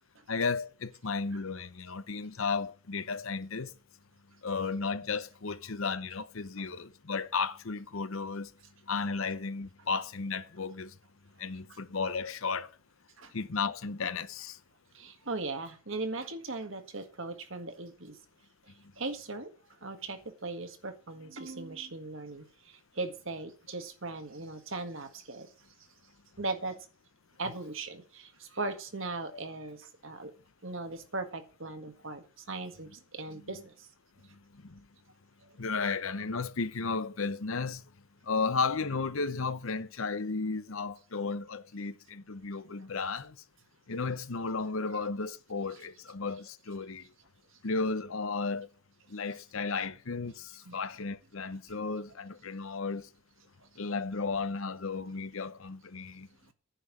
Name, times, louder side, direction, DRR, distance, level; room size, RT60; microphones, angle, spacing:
voice 1, 0.3-3.7 4.4-8.5 8.9-10.9 11.4-12.7 13.3-14.6 29.3-29.4 33.3-33.6 34.6-34.8 35.6-37.8 38.3-43.4 43.9-47.0 47.6-48.7 49.1-53.0 53.8-56.3, left 4 dB, 65° left, 0.8 m, -34 dB
voice 2, 14.9-18.1 19.0-19.5 19.8-22.4 22.9-25.5 26.4-26.7 27.4-30.3 30.6-33.7 50.7-50.8, right 3 dB, 60° right, 1.7 m, -38 dB
10.0 x 5.7 x 8.5 m
head